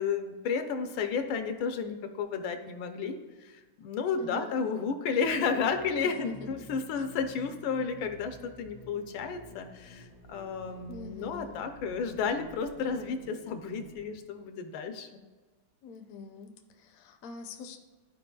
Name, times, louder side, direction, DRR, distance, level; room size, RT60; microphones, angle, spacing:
voice 1, 0.0-3.5 3.8-15.2, left 5 dB, 80° left, 7 dB, 1.4 m, -32 dB
voice 2, 4.2-4.6 6.0-6.6 6.9-7.0 10.9-11.6 15.8-17.8, left 4 dB, 65° left, 4 dB, 0.8 m, -44 dB
sound 1, 5.1-14.1, equal, 80° right, 3.1 m, -50 dB
12.5 x 4.5 x 2.3 m, 1.3 s
omnidirectional pair, 2.2 m